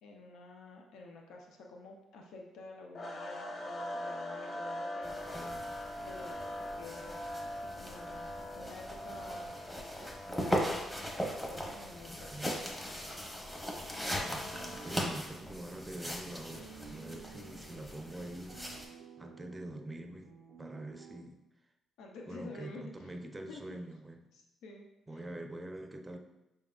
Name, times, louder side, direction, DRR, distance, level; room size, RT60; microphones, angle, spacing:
voice 1, 0.0-5.3 6.0-7.2 7.5-9.5 10.3-10.6 10.9-11.1 11.5-12.1 22.0-23.1 23.5-23.6 24.3-24.9 25.1-25.2, left 2 dB, 85° left, 1 dB, 0.6 m, -49 dB
sound 1, 2.9-15.3, left 1 dB, 45° left, 0.7 m, -43 dB
sound 2, 5.0-18.9, equal, 10° left, 0.9 m, -39 dB
voice 2, 5.3-5.8 12.0-12.6 14.8-18.7 19.2-20.3 20.6-21.4 22.3-24.3 25.1-26.2, right 1 dB, 15° right, 4 dB, 0.5 m, -45 dB
sound 3, 14.3-21.2, right 6 dB, 70° right, 0.4 m, -54 dB
5.3 x 3.5 x 2.3 m, 0.94 s
cardioid pair, 90°, 0 cm